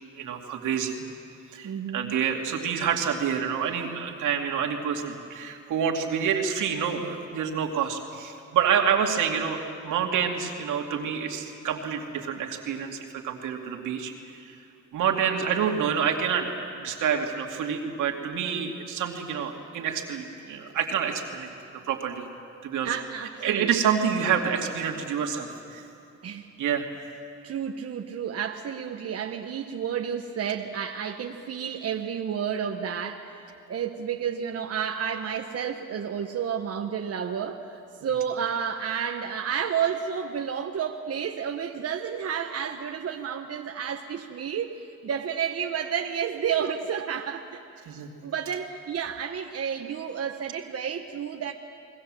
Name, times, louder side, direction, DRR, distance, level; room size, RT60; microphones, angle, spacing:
voice 1, 0.1-1.0 1.5-14.6 14.9-21.5 21.9-22.3 22.6-23.0 23.4-25.8 26.6-26.9 47.9-48.1, right 7 dB, 80° right, 2 dB, 2.6 m, -28 dB
voice 2, 1.6-2.2 22.8-23.7 26.2-26.5 27.4-33.3 33.7-47.6 48.2-51.5, right 8 dB, 55° right, 3 dB, 1.2 m, -31 dB
29.0 x 20.5 x 7.7 m, 2.7 s
cardioid pair, 90°, 30 cm